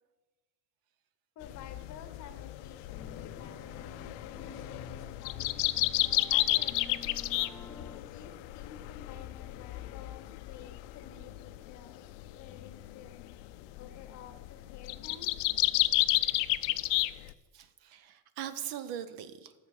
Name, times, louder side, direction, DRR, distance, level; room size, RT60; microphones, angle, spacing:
sound 1, 1.4-17.3, left 18 dB, 70° left, 0.5 m, -32 dB
voice 1, 1.4-5.8 6.3-7.4 8.0-13.2 13.7-15.5, left 7 dB, 40° left, 10 dB, 0.9 m, -52 dB
sound 2, 2.9-8.0, left 2 dB, 10° left, 0.9 m, -51 dB
voice 2, 17.5-19.5, right 10 dB, 55° right, 12 dB, 0.7 m, -41 dB
8.6 x 6.9 x 6.4 m, 1.2 s
cardioid pair, 165°, 45 cm